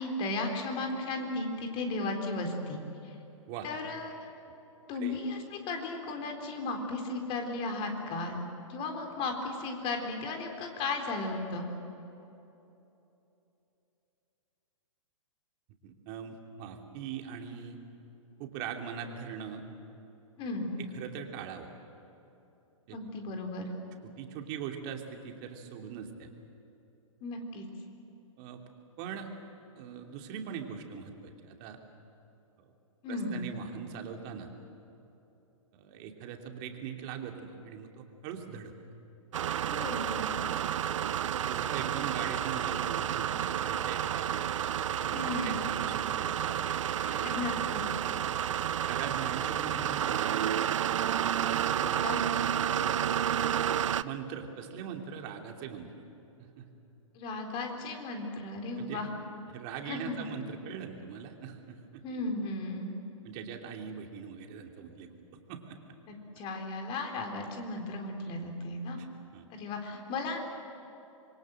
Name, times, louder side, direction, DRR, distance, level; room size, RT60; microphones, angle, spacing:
voice 1, 0.0-3.1 3.6-4.1 4.9-8.4 8.7-11.7 20.4-20.8 22.9-23.7 27.2-27.7 33.0-33.4 39.7-40.3 45.1-45.7 47.0-47.8 51.8-52.3 57.1-59.1 59.9-60.2 62.0-63.0 66.1-69.0 69.5-70.4, left 2 dB, 30° left, 3 dB, 3.9 m, -35 dB
voice 2, 15.8-17.8 18.4-19.6 20.8-21.7 22.9-23.0 24.0-26.3 28.4-28.7 29.0-29.3 29.7-31.8 33.1-34.5 35.7-38.7 41.3-44.4 44.7-46.6 47.0-47.3 48.9-50.6 51.0-51.2 54.0-55.9 56.4-56.7 58.7-59.1 59.5-62.0 63.2-65.1 65.5-65.8 69.0-69.1 69.3-69.4, right 7 dB, 40° right, 3 dB, 2.9 m, -41 dB
sound 1, 39.3-54.0, right 10 dB, 65° right, 0.6 m, -30 dB
26.5 x 23.0 x 7.8 m, 3.0 s
hypercardioid pair, 125°, 17 cm